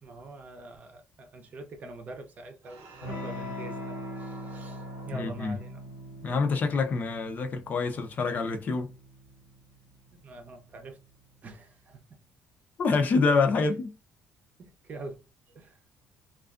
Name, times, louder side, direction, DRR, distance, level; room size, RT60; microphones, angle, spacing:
voice 1, 0.0-5.8 10.1-11.0 11.4-12.0 14.6-15.2 15.5-15.8, right 2 dB, 35° right, 0.7 m, -45 dB
sound 1, 2.6-7.4, right 3 dB, 85° right, 0.7 m, -51 dB
Electric guitar / Strum, 3.0-11.3, left 1 dB, 85° left, 1.2 m, -42 dB
voice 2, 5.1-5.5 6.2-8.9 12.8-13.9, left 4 dB, 40° left, 0.6 m, -26 dB
2.4 x 2.3 x 2.4 m
cardioid pair, 135°, 4 cm